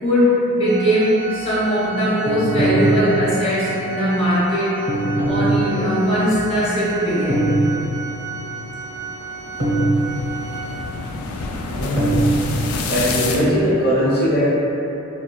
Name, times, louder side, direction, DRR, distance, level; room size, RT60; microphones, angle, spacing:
voice 1, 0.0-4.7 5.2-7.6, equal, 25° left, -10 dB, 0.9 m, -20 dB
Organ, 0.6-11.2, right 3 dB, 50° right, 0.3 m, -33 dB
sound 1, 2.3-3.6 4.9-6.1 7.3-8.2 9.6-10.6 12.0-12.3, right 1 dB, 85° right, 0.8 m, -21 dB
sound 2, 5.8-13.4, left 3 dB, 90° left, 0.3 m, -30 dB
voice 2, 11.7-12.1 12.9-14.5, equal, 50° left, -9 dB, 1.0 m, -19 dB
3.9 x 2.2 x 2.3 m, 3.0 s
head